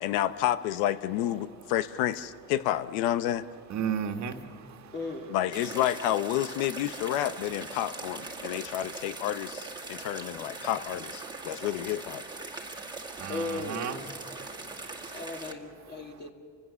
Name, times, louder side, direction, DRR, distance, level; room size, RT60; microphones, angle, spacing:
voice 1, 0.0-3.4 5.3-12.2, left 12 dB, 90° left, 13 dB, 0.9 m, -30 dB
voice 2, 3.7-4.9 8.4-8.6 11.4-11.5 12.7-15.2, right 7 dB, 50° right, 5 dB, 1.8 m, -36 dB
voice 3, 4.9-5.3 13.3-14.0 15.1-16.3, left 3 dB, 30° left, 2 dB, 2.7 m, -36 dB
sound 1, 5.5-15.5, right 3 dB, 10° right, 1.9 m, -41 dB
30.0 x 16.0 x 7.0 m, 2.5 s
cardioid pair, 110°, 35 cm